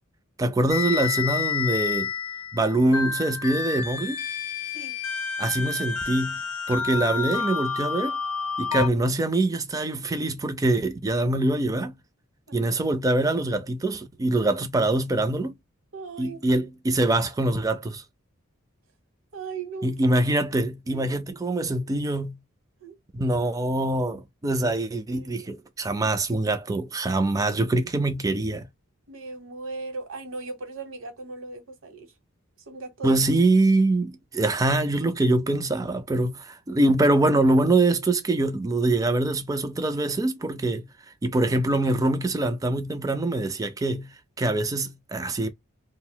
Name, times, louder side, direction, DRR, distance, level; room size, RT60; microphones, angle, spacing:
voice 1, 0.4-2.1 2.5-4.2 5.4-6.4 6.7-8.2 8.6-11.9 12.5-15.5 16.2-18.0 19.8-22.4 23.1-28.7 33.0-40.9 41.2-44.1 44.4-45.5, right 2 dB, 15° right, 0.3 m, -24 dB
sound 1, 0.7-8.9, left 6 dB, 85° left, 0.5 m, -29 dB
voice 2, 15.9-16.4 19.3-19.9 20.9-21.1 22.8-23.0 25.1-25.3 29.1-32.1 32.7-33.1, right 3 dB, 65° right, 0.9 m, -38 dB
2.4 x 2.0 x 3.7 m
head